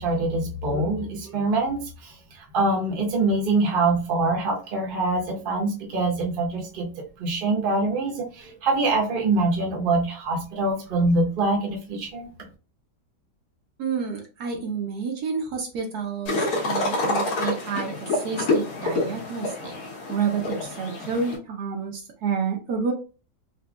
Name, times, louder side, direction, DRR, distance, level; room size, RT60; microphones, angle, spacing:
voice 1, 0.0-6.9 7.2-12.3, right 2 dB, 40° right, 0 dB, 0.8 m, -24 dB
voice 2, 13.8-19.8 20.1-22.9, right 6 dB, 70° right, 2 dB, 1.1 m, -29 dB
sound 1, 16.3-21.4, left 2 dB, 60° left, 1.4 m, -27 dB
4.2 x 2.5 x 2.2 m, 0.34 s
omnidirectional pair, 1.9 m